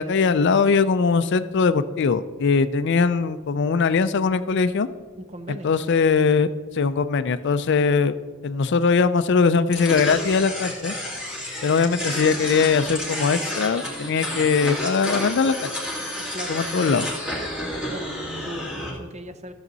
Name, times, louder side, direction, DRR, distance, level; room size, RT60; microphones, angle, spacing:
voice 1, 0.0-4.9 5.6-6.5 6.7-8.1 8.4-10.9 11.6-15.7 16.5-17.0, left 5 dB, 55° left, 13 dB, 0.4 m, -21 dB
voice 2, 5.2-5.7 16.1-17.1 17.7-19.5, equal, 35° right, 9 dB, 0.7 m, -38 dB
sound 1, 9.7-18.9, left 1 dB, 5° right, 2.2 m, -30 dB
13.5 x 7.2 x 4.0 m, 1.4 s
head